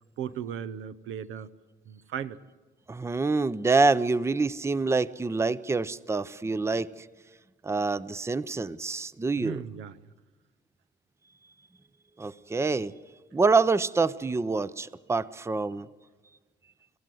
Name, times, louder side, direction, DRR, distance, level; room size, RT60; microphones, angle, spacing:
voice 1, 0.0-1.5 1.9-2.4 9.4-10.0, right 8 dB, 85° right, 14 dB, 0.8 m, -36 dB
voice 2, 2.9-6.9 7.6-9.6 12.2-12.9 13.3-15.9, right 3 dB, 15° right, 17 dB, 0.5 m, -26 dB
26.5 x 15.0 x 7.8 m, 1.3 s
cardioid pair, 90°, 20 cm